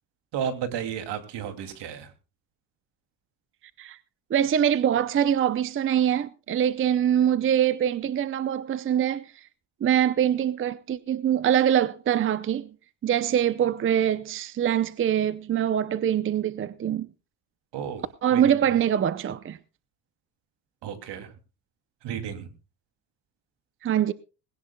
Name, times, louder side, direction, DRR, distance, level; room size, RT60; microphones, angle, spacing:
voice 1, 0.3-2.1 17.7-18.8 20.8-21.3 22.0-22.5, right 8 dB, 75° right, 2.8 m, -33 dB
voice 2, 4.3-9.3 9.8-12.7 13.0-17.1 18.2-19.6 23.8-24.1, right 10 dB, 30° right, 0.6 m, -24 dB
20.5 x 17.5 x 2.3 m
cardioid pair, 150°, 42 cm